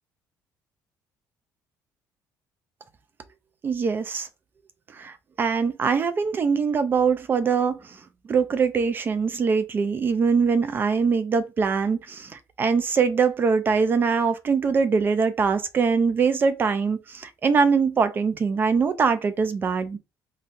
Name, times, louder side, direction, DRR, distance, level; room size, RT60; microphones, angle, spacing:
voice 1, 3.6-4.3 4.9-8.0 8.3-20.0, right 5 dB, 35° right, 0.4 m, -23 dB
3.7 x 2.2 x 2.6 m
cardioid pair, 115°, 6 cm